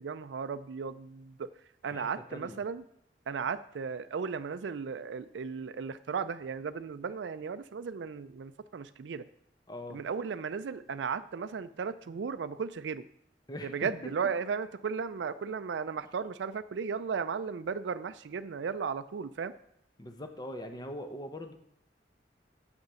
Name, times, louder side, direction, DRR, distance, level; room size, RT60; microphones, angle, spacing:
voice 1, 0.0-1.5 1.8-2.8 3.3-9.3 9.9-13.1 13.6-19.5, right 5 dB, 85° right, 11 dB, 0.4 m, -35 dB
voice 2, 1.9-2.6 9.7-10.0 13.5-13.9 20.0-21.5, left 1 dB, 25° left, 6 dB, 0.9 m, -42 dB
8.0 x 6.5 x 6.9 m, 0.74 s
head